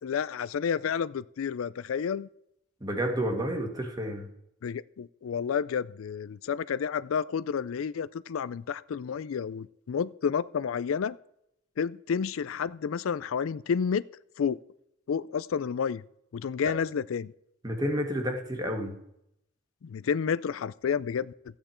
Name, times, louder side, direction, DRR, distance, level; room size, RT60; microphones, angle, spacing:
voice 1, 0.0-2.3 4.6-11.2 11.8-14.0 14.4-14.6 15.1-16.0 16.3-17.3 19.8-21.3, left 6 dB, 90° left, 19 dB, 0.4 m, -30 dB
voice 2, 2.8-4.3 17.6-18.9, equal, 20° right, 3 dB, 1.8 m, -30 dB
14.0 x 8.9 x 4.4 m, 0.77 s
head